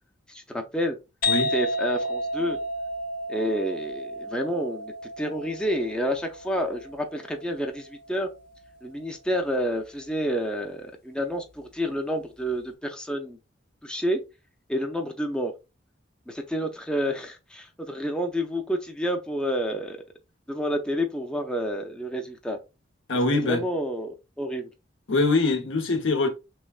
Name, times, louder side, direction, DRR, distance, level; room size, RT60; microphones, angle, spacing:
voice 1, 0.3-1.0 1.5-2.6 3.3-8.3 8.8-13.4 13.8-14.2 14.7-15.5 16.3-20.0 20.5-22.6 23.3-24.7, equal, 5° left, 0.4 m, -29 dB
sound 1, 1.2-8.7, equal, 50° left, 0.6 m, -32 dB
voice 2, 23.1-23.6 25.1-26.3, left 3 dB, 80° left, 0.8 m, -23 dB
3.5 x 3.2 x 2.3 m
head